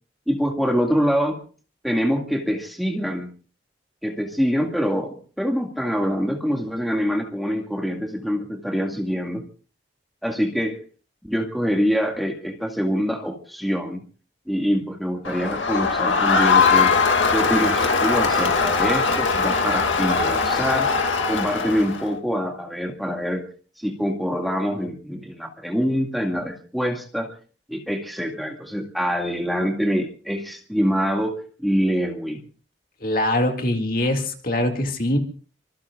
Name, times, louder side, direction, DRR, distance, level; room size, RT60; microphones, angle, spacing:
voice 1, 0.3-1.4 1.8-3.3 4.0-9.4 10.2-10.8 11.2-14.0 14.5-16.9 17.3-20.9 21.3-23.5 23.8-27.3 27.7-32.4, equal, ahead, 1 dB, 2.0 m, -25 dB
Crowd, 15.2-22.1, left 4 dB, 90° left, 2.3 m, -20 dB
voice 2, 33.0-35.2, left 1 dB, 45° left, 4 dB, 2.2 m, -23 dB
25.0 x 21.5 x 2.4 m, 0.41 s
head